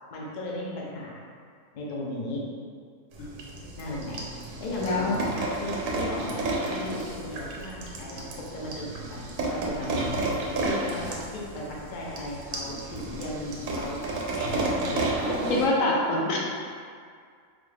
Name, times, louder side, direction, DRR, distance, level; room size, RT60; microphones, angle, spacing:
voice 1, 0.1-1.2 1.7-2.4 3.8-4.2 4.6-8.2 8.5-9.2 9.5-10.1 10.3-14.0 14.5-15.2, left 1 dB, 50° left, -4 dB, 0.6 m, -36 dB
sound 1, 3.1-15.7, right 2 dB, 80° right, 1.0 m, -32 dB
voice 2, 4.8-5.2 15.5-16.4, left 2 dB, 75° left, -2 dB, 1.0 m, -24 dB
4.0 x 2.3 x 3.2 m, 2.1 s
omnidirectional pair, 1.4 m